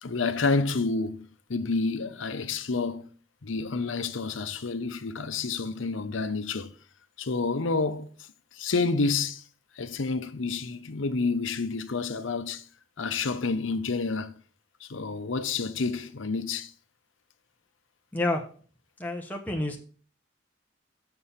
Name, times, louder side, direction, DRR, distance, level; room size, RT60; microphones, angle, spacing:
voice 1, 0.0-3.1 3.4-6.7 7.2-8.1 8.5-9.4 9.8-12.6 13.0-14.4 14.8-16.7, left 4 dB, 80° left, 0.7 m, -29 dB
voice 2, 18.1-18.4 19.0-19.8, left 2 dB, 10° left, 1.1 m, -29 dB
6.9 x 6.7 x 5.6 m
head